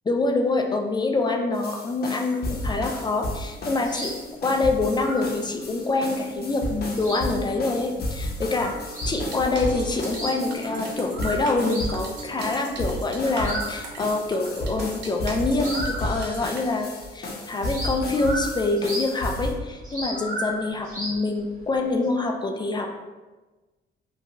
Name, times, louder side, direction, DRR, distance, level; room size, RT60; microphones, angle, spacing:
voice 1, 0.1-4.1 4.4-8.7 9.1-22.9, left 3 dB, 20° left, 3 dB, 0.3 m, -25 dB
sound 1, 1.5-19.5, left 1 dB, 55° left, 0.7 m, -33 dB
sound 2, 3.4-16.6 16.9-22.1, right 1 dB, 40° right, 1.5 m, -37 dB
sound 3, 9.1-16.6, right 3 dB, 65° right, 0.6 m, -40 dB
2.9 x 2.2 x 2.6 m, 1.2 s
cardioid pair, 90°, 20 cm